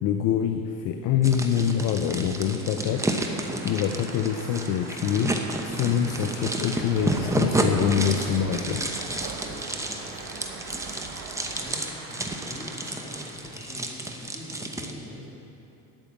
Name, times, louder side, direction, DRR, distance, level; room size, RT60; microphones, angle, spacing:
voice 1, 0.0-3.1 3.6-5.3 5.6-8.8, left 8 dB, 60° left, 6 dB, 0.7 m, -25 dB
sound 1, 1.2-14.9, right 1 dB, 10° right, 0.9 m, -31 dB
Applause, 2.5-14.0, right 3 dB, 80° right, 2.7 m, -44 dB
sound 2, 6.7-11.8, right 5 dB, 65° right, 1.1 m, -41 dB
voice 2, 9.3-10.1 11.3-15.3, left 1 dB, 15° left, -6 dB, 3.1 m, -44 dB
10.0 x 8.9 x 7.3 m, 2.8 s
cardioid pair, 115°, 36 cm